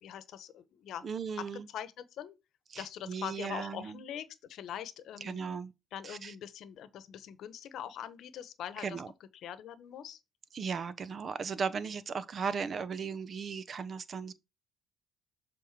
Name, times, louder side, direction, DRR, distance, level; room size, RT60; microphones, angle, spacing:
voice 1, 0.0-1.0 1.4-2.4 2.8-5.5 5.9-9.0 9.4-10.2, left 10 dB, 70° left, 0.9 m, -43 dB
voice 2, 1.0-1.7 2.7-4.0 5.2-5.7 6.0-6.3 8.8-9.1 10.5-14.3, right 5 dB, 45° right, 0.8 m, -37 dB
7.2 x 3.7 x 4.7 m
cardioid pair, 90°, 0 cm